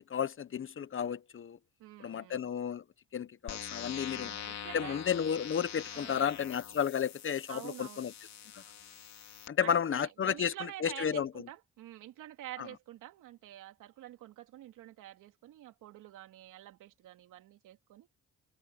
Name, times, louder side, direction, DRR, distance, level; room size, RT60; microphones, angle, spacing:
voice 1, 0.0-1.6 2.0-2.8 3.1-4.3 4.7-8.1 8.5-8.6 9.5-11.3 12.6-12.7, left 8 dB, 45° left, 1.0 m, -32 dB
voice 2, 1.8-2.5 4.1-5.0 5.9-6.4 7.5-8.1 9.6-18.1, right 13 dB, 90° right, 3.2 m, -48 dB
sound 1, 3.5-9.5, left 9 dB, 60° left, 3.0 m, -44 dB
cardioid pair, 90°, 30 cm